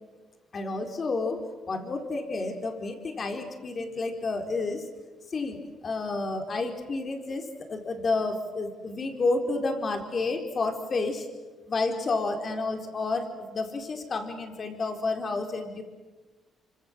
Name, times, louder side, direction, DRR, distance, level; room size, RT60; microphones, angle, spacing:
voice 1, 0.5-1.4 1.7-4.9 5.3-5.6 5.8-11.3 11.7-15.8, left 3 dB, 40° left, 5 dB, 4.5 m, -30 dB
26.0 x 26.0 x 7.7 m, 1.3 s
cardioid pair, 90°, 0 cm